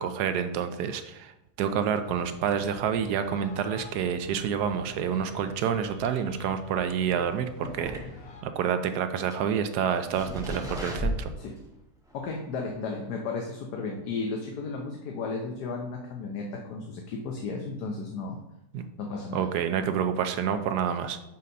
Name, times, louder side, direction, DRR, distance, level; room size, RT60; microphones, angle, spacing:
voice 1, 0.0-1.3 1.6-8.0 8.4-11.3 18.7-18.8 19.3-21.2, right 8 dB, 75° right, 9 dB, 1.1 m, -28 dB
sound 1, 2.0-8.4, left 4 dB, 50° left, 0.8 m, -47 dB
sound 2, 7.6-8.5 8.8-8.9 9.3-9.4 9.9-11.7 12.1-12.2 12.7-12.8, equal, ahead, 1.4 m, -34 dB
voice 2, 12.1-18.4 19.0-19.5, left 4 dB, 75° left, 1 dB, 1.3 m, -34 dB
6.4 x 4.1 x 5.3 m, 0.87 s
omnidirectional pair, 1.8 m